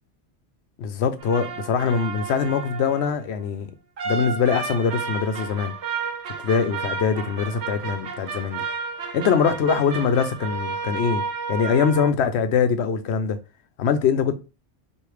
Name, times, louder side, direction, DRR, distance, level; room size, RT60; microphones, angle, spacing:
voice 1, 0.8-3.7 4.0-5.7 6.4-8.6 9.1-11.2 11.5-13.4 13.8-14.3, left 6 dB, 80° left, 0.9 m, -23 dB
sound 1, 1.2-3.2 4.0-12.1, right 5 dB, 80° right, 1.0 m, -32 dB
3.3 x 2.7 x 4.6 m
omnidirectional pair, 1.1 m